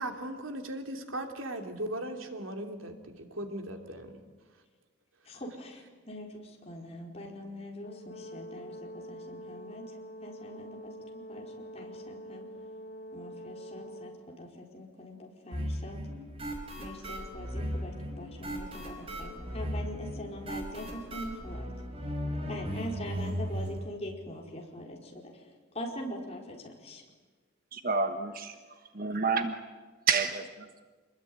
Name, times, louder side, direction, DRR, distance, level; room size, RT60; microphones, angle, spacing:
voice 1, 0.0-4.2, right 1 dB, 80° right, 4 dB, 3.1 m, -38 dB
voice 2, 5.2-9.9 10.2-12.5 13.1-16.0 16.8-21.7 22.5-25.4 25.7-27.0, left 1 dB, 30° left, 0 dB, 4.8 m, -43 dB
Brass instrument, 7.8-14.2, equal, 55° left, 4.2 m, -45 dB
sound 1, 15.5-23.8, equal, 30° right, 4.9 m, -36 dB
voice 3, 27.7-28.5 28.9-29.5 30.1-30.8, right 5 dB, 45° right, 7 dB, 1.3 m, -29 dB
27.5 x 21.0 x 9.6 m, 1.4 s
head